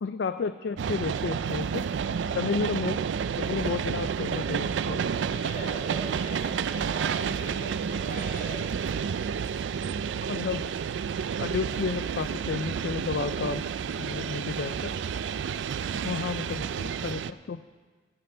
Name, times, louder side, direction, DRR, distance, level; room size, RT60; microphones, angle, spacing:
voice 1, 0.0-1.8 2.3-3.0 3.4-5.0 10.3-10.7 11.4-13.6 14.0-14.9 16.0-17.6, left 5 dB, 65° left, 11 dB, 0.4 m, -31 dB
sound 1, 0.8-17.3, right 7 dB, 80° right, 0.3 m, -30 dB
voice 2, 5.3-9.0, right 1 dB, 50° left, -5 dB, 4.7 m, -42 dB
16.5 x 11.5 x 3.8 m, 1.5 s
head